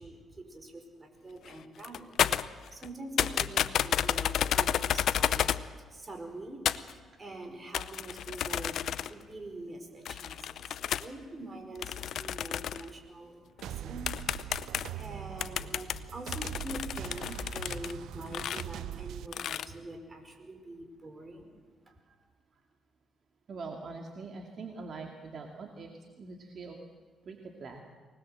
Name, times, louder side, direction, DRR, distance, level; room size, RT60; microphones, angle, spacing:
voice 1, 0.0-15.7 16.1-21.6, right 2 dB, 30° right, 5 dB, 4.9 m, -45 dB
sound 1, 1.5-1.6 1.8-2.9 3.2-5.7 6.7-6.9 7.7-9.2 10.1-11.1 11.8-12.9 13.6-13.7 14.1-15.0 15.4-17.9 18.3-18.6 19.3-19.7, left 10 dB, 70° left, 0.7 m, -31 dB
sound 2, 13.6-19.3, right 12 dB, 80° right, 0.6 m, -42 dB
voice 2, 23.5-26.8 27.3-27.8, right 4 dB, 50° right, 2 dB, 2.3 m, -44 dB
24.0 x 19.5 x 7.7 m, 1.4 s
cardioid pair, 90°, 0 cm